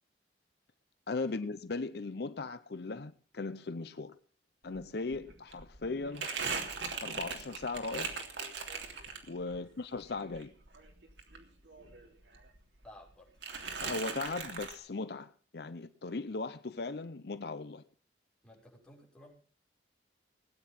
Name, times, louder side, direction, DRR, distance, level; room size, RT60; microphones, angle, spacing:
voice 1, 1.1-4.2 4.6-6.3 6.8-8.3 9.3-10.5 13.8-17.8, left 3 dB, 60° left, 0.7 m, -38 dB
Crumpling crinkling, 4.8-4.9 5.1-9.6 9.9-12.1 12.3-13.1 13.4-14.8, right 5 dB, 80° right, 3.2 m, -39 dB
voice 2, 12.8-13.3 18.4-19.3, left 1 dB, 5° left, 6.0 m, -55 dB
19.5 x 9.5 x 5.9 m
head